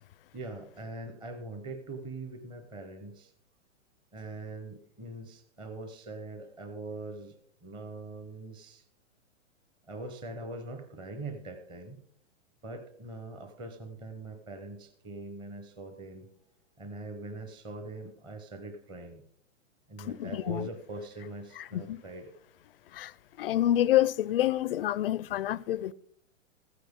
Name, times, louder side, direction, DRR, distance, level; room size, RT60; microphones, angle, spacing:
voice 1, 0.3-3.3 4.1-8.8 9.9-12.0 12.6-16.3 16.8-19.2 19.9-22.3, right 2 dB, 10° right, 0.8 m, -42 dB
voice 2, 20.1-20.7 21.6-22.0 22.9-23.1 23.4-25.9, left 13 dB, 45° left, 0.4 m, -28 dB
15.0 x 9.5 x 3.6 m
hypercardioid pair, 155°, 39 cm